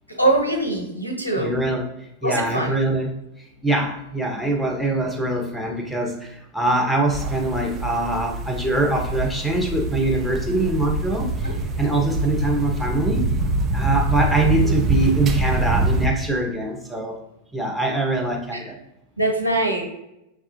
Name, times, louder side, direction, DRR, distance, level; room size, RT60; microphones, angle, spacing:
voice 1, 0.2-1.5 2.2-2.8 11.4-11.5 18.5-18.6 19.2-19.9, right 2 dB, 85° left, 2 dB, 0.8 m, -22 dB
voice 2, 1.4-1.8 2.2-3.1 3.4-13.2 13.7-17.2 17.5-18.8, right 2 dB, 5° left, 1 dB, 0.9 m, -23 dB
sound 1, 7.1-16.1, right 2 dB, 25° right, 0.5 m, -25 dB
6.4 x 2.3 x 2.9 m, 0.87 s
figure-of-eight pair, 90°, 0 cm